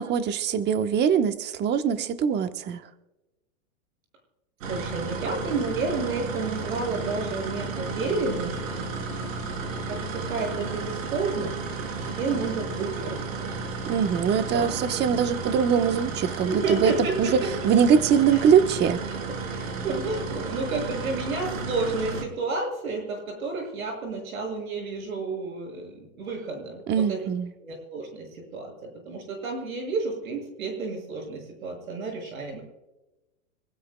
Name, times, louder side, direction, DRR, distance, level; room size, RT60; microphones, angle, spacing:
voice 1, 0.0-2.8 13.9-16.9 17.2-17.3 17.6-19.0 26.9-27.5, right 7 dB, 25° right, 8 dB, 1.1 m, -22 dB
sound 1, 4.6-22.2, right 4 dB, 70° right, 4.8 m, -33 dB
voice 2, 4.7-8.9 9.9-11.5 12.0-13.5 14.4-14.7 16.4-17.5 18.3-18.4 19.1-19.2 19.5-27.2 27.6-32.6, right 3 dB, 85° right, 1 dB, 6.5 m, -31 dB
25.5 x 15.0 x 2.3 m, 1.0 s
supercardioid pair, 135°, 41 cm